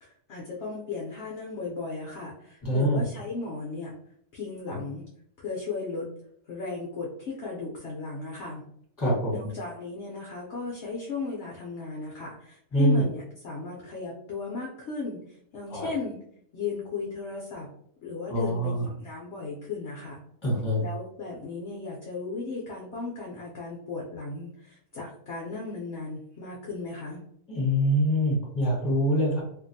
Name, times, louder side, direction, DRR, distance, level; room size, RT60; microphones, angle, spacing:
voice 1, 0.0-4.0 4.3-5.0 5.4-6.1 6.5-8.7 9.3-16.2 16.5-17.7 18.0-20.2 20.8-27.2, left 4 dB, 65° left, -3 dB, 0.7 m, -36 dB
voice 2, 2.6-3.0 4.7-4.8 9.0-9.5 12.7-13.0 15.7-15.9 18.3-18.8 20.4-20.8 27.5-29.4, equal, 15° left, -5 dB, 1.0 m, -24 dB
2.8 x 2.6 x 2.6 m, 0.69 s
omnidirectional pair, 1.7 m